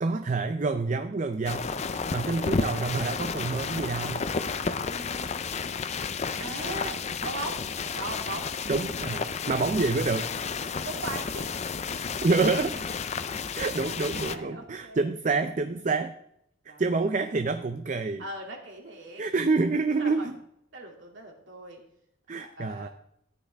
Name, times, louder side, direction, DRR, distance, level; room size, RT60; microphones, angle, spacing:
voice 1, 0.0-1.7 2.1-4.3 8.7-10.3 12.2-12.9 13.5-16.2 16.8-18.2 19.2-20.4 22.3-22.9, right 3 dB, 40° right, 8 dB, 0.5 m, -27 dB
sound 1, 1.4-14.3, left 5 dB, 35° left, 0.4 m, -32 dB
voice 2, 4.6-5.3 6.4-7.7 7.9-8.5 10.8-11.5 13.8-15.1 16.7-16.8 18.2-19.2 20.0-20.3 20.7-21.8 22.4-22.9, right 2 dB, 65° right, 0 dB, 2.5 m, -39 dB
13.5 x 9.4 x 3.4 m, 0.75 s
head